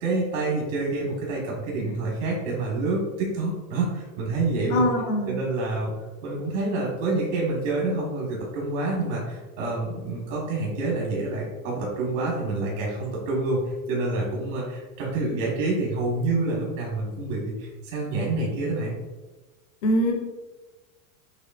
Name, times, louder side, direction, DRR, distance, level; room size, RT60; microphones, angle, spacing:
voice 1, 0.0-4.9 5.3-5.9 6.2-13.6 13.9-19.0, right 2 dB, 60° right, -4 dB, 1.3 m, -27 dB
voice 2, 4.7-5.4 19.8-20.1, equal, 30° left, 1 dB, 0.3 m, -22 dB
6.7 x 3.1 x 2.3 m, 1.2 s
supercardioid pair, 175°, 44 cm